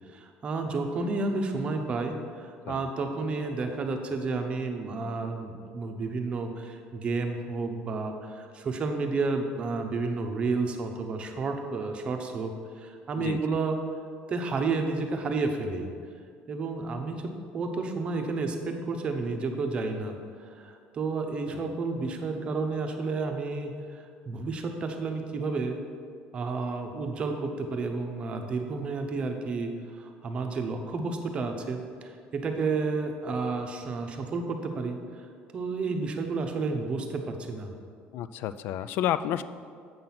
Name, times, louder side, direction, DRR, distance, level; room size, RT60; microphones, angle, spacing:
voice 1, 0.1-13.8 14.3-15.9 16.5-25.8 26.3-35.3 35.5-37.7, right 3 dB, 30° right, 5 dB, 0.7 m, -31 dB
voice 2, 13.2-13.6 38.1-39.4, left 11 dB, 65° left, 14 dB, 0.3 m, -30 dB
7.7 x 6.0 x 5.6 m, 2.2 s
cardioid pair, 170°, 4 cm